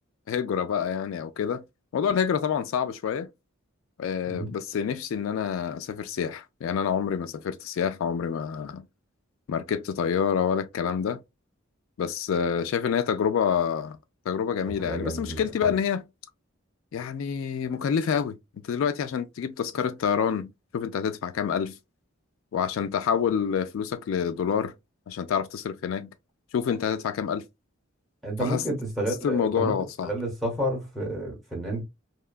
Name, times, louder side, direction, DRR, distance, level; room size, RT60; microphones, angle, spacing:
voice 1, 0.3-1.6 1.9-3.3 4.0-8.9 9.5-11.2 12.0-14.0 14.3-16.0 16.9-18.3 18.7-21.8 22.5-24.7 25.1-26.1 26.5-27.4 28.4-28.6 29.2-30.1, left 7 dB, 75° left, 0.3 m, -27 dB
voice 2, 14.8-15.8 28.2-29.7 30.0-31.9, right 1 dB, ahead, 1.0 m, -30 dB
2.8 x 2.3 x 2.3 m
head